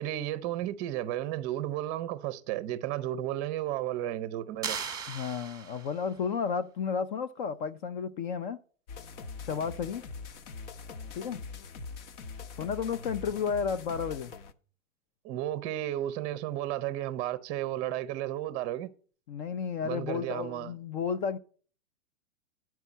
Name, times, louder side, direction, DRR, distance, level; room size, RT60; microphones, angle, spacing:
voice 1, 0.0-4.8 15.2-18.9 19.8-20.7, right 13 dB, 25° right, 0.6 m, -33 dB
sound 1, 4.6-6.1, right 6 dB, 10° right, 1.0 m, -37 dB
voice 2, 5.1-8.6 9.4-10.0 11.2-11.4 12.6-14.3 19.3-21.4, left 6 dB, 35° left, 0.5 m, -32 dB
sound 2, 8.9-14.5, left 4 dB, 55° left, 0.9 m, -43 dB
9.6 x 4.6 x 7.2 m
hypercardioid pair, 115°, 42 cm